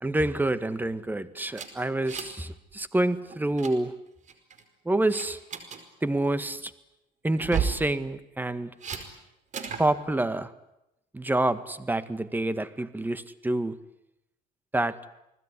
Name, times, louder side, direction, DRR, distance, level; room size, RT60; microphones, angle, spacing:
voice 1, 0.0-3.9 4.9-5.4 6.0-6.7 7.2-8.7 9.8-10.5 11.1-13.8 14.7-15.0, right 2 dB, 10° right, 13 dB, 1.7 m, -27 dB
sound 1, 1.5-2.5 2.7-2.9 3.3-3.7 4.3-4.6 5.1-5.8 7.3-7.8 8.8-9.0 9.5-9.9, right 7 dB, 45° right, 4.9 m, -33 dB
30.0 x 20.0 x 9.9 m, 0.87 s
cardioid pair, 110°, 17 cm